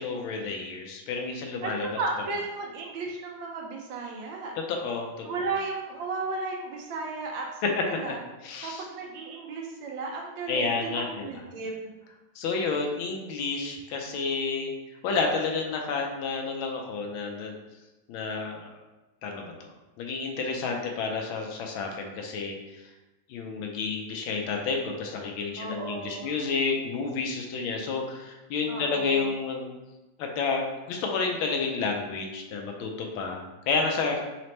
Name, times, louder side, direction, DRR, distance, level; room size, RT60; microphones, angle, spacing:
voice 1, 0.0-1.9 4.7-5.2 8.4-8.8 10.5-11.4 12.4-14.7 15.0-17.5 18.1-18.7 19.2-19.7 20.0-22.6 23.3-29.7 30.2-34.2, left 4 dB, 80° left, 2 dB, 1.4 m, -30 dB
voice 2, 1.6-4.5 5.2-8.2 8.6-11.9 25.6-26.3 28.7-29.3, right 3 dB, 75° right, 0 dB, 1.3 m, -34 dB
4.1 x 2.9 x 3.1 m, 1.1 s
omnidirectional pair, 2.2 m